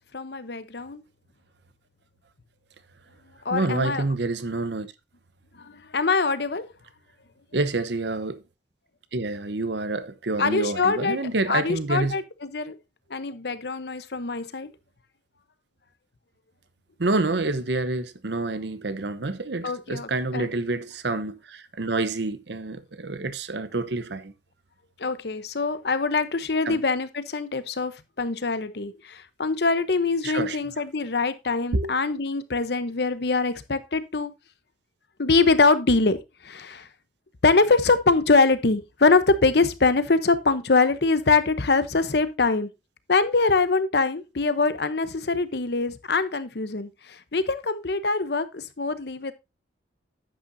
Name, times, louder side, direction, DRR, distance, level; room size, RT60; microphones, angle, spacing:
voice 1, 0.1-1.0 3.4-4.0 5.6-6.7 10.4-11.2 11.5-12.8 13.1-14.7 19.6-20.5 25.0-34.3 35.2-36.9 37.4-42.7 43.1-49.3, left 3 dB, 60° left, 0.8 m, -23 dB
voice 2, 3.5-4.9 7.5-8.4 9.1-12.1 17.0-24.3 26.6-26.8 30.2-30.6 31.7-31.9, right 2 dB, 70° right, 0.9 m, -28 dB
10.0 x 8.6 x 2.7 m
head